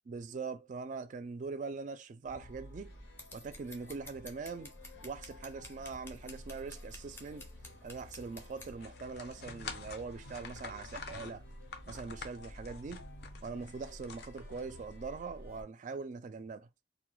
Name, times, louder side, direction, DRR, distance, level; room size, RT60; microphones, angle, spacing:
voice 1, 0.1-2.9 3.3-4.7 5.0-7.5 7.8-11.4 11.9-13.1 13.4-16.7, right 4 dB, 45° right, 0.3 m, -42 dB
sound 1, 2.2-15.6, left 1 dB, 85° left, 0.8 m, -51 dB
Scissors, 3.2-8.7, left 2 dB, 15° left, 0.5 m, -51 dB
sound 2, 8.8-14.9, left 5 dB, 60° left, 0.5 m, -47 dB
2.2 x 2.1 x 3.0 m
head